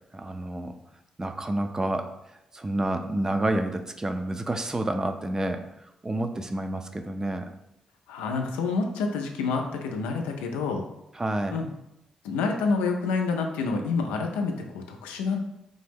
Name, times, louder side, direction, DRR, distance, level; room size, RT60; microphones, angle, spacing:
voice 1, 0.1-0.7 1.2-2.1 2.5-5.6 6.0-7.5 11.2-11.6, right 1 dB, 25° right, 7 dB, 0.4 m, -29 dB
voice 2, 8.1-10.8 11.5-11.7 12.2-15.4, left 4 dB, 90° left, 3 dB, 0.4 m, -28 dB
3.4 x 2.0 x 3.4 m, 0.86 s
hypercardioid pair, 45°, 2 cm